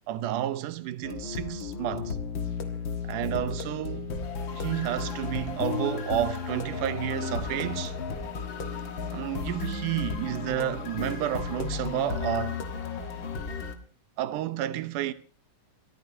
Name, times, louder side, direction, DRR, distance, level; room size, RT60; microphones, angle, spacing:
voice 1, 0.1-2.2 3.0-4.1 4.5-8.0 9.1-12.6 14.2-15.1, right 12 dB, 85° right, 2.4 m, -31 dB
sound 1, 1.0-13.7, left 5 dB, 45° left, 2.0 m, -34 dB
Bass guitar, 1.9-11.7, left 4 dB, 70° left, 2.6 m, -46 dB
29.5 x 14.0 x 2.9 m
omnidirectional pair, 3.6 m